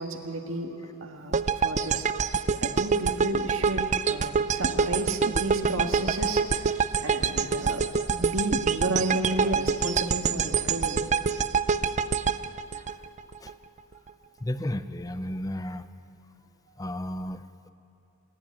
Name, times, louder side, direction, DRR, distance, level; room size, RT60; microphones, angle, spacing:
voice 1, 0.0-6.7 7.0-7.8 8.1-11.1, right 2 dB, 60° right, 3 dB, 1.8 m, -32 dB
sound 1, 1.3-13.5, right 5 dB, 30° right, 0.4 m, -26 dB
voice 2, 14.4-15.9 16.8-17.7, left 1 dB, 15° left, 12 dB, 0.6 m, -33 dB
27.0 x 10.5 x 10.0 m, 2.7 s
head